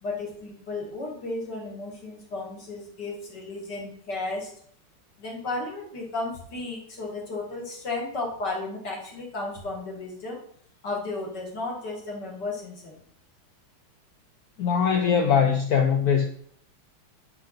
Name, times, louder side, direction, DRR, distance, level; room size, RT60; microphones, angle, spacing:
voice 1, 0.0-4.5 5.2-10.4 10.8-13.0, left 2 dB, 55° left, -1 dB, 2.6 m, -34 dB
voice 2, 14.6-16.3, left 7 dB, 70° left, 4 dB, 0.8 m, -21 dB
9.5 x 6.1 x 3.9 m, 0.63 s
omnidirectional pair, 2.3 m